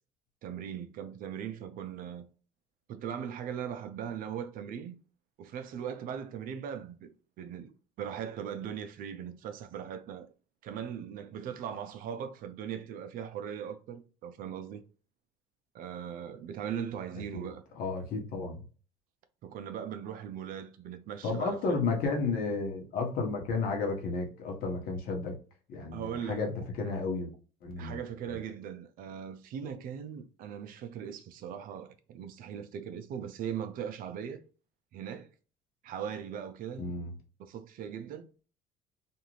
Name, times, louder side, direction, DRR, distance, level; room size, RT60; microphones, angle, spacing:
voice 1, 0.4-2.3 2.9-5.0 5.4-7.7 8.0-10.3 10.6-14.8 15.7-17.6 19.4-21.9 25.9-26.4 27.8-34.4 34.9-35.3 35.8-37.1 37.4-38.3, right 8 dB, 60° right, 0.5 m, -39 dB
voice 2, 17.4-18.6 21.2-25.4 25.7-27.3 27.6-28.0 28.2-28.4 36.8-37.1, left 4 dB, 65° left, 1.1 m, -32 dB
2.6 x 2.4 x 3.0 m
supercardioid pair, 95°, 16 cm